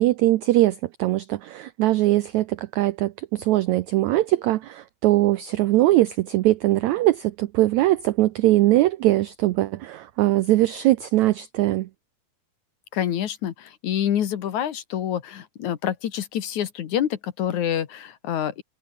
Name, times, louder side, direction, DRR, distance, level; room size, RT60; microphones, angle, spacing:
voice 1, 0.0-11.9, right 16 dB, 80° right, 1.6 m, -21 dB
voice 2, 12.9-18.6, left 10 dB, 60° left, 2.7 m, -27 dB
omnidirectional pair, 4.1 m